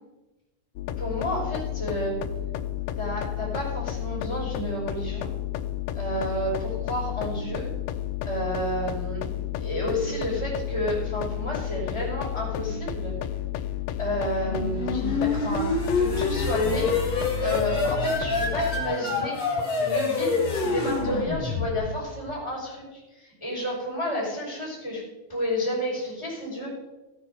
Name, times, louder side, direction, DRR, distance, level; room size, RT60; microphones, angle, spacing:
sound 1, 0.8-18.8, left 11 dB, 80° left, 2.2 m, -32 dB
voice 1, 1.0-2.2 3.0-5.3 5.9-7.7 8.2-13.1 14.0-16.9 17.4-19.4 19.8-25.0 25.3-26.8, equal, 5° left, -5 dB, 5.2 m, -31 dB
sound 2, 14.5-22.1, left 3 dB, 50° left, 4.1 m, -26 dB
15.0 x 9.2 x 5.4 m, 1.1 s
omnidirectional pair, 4.1 m